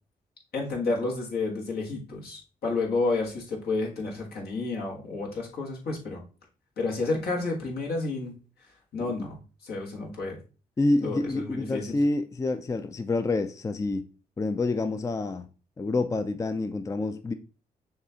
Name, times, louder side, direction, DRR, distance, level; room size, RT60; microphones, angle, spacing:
voice 1, 0.5-6.2 6.8-8.3 8.9-10.4 11.0-12.0, left 3 dB, 75° left, 1.4 m, -30 dB
voice 2, 10.8-14.0 14.4-15.5 15.8-17.3, left 2 dB, 20° left, 0.4 m, -27 dB
6.4 x 2.4 x 2.8 m
supercardioid pair, 60°, 16 cm